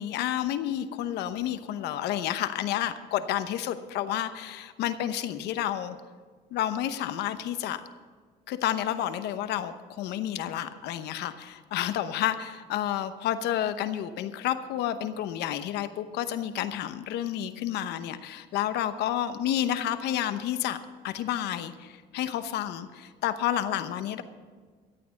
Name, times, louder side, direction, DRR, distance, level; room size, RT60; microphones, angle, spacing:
voice 1, 0.0-6.0 6.5-7.8 8.5-20.8 21.0-24.2, left 11 dB, 80° left, 11 dB, 0.9 m, -30 dB
13.5 x 8.7 x 7.0 m, 1.5 s
cardioid pair, 110°, 17 cm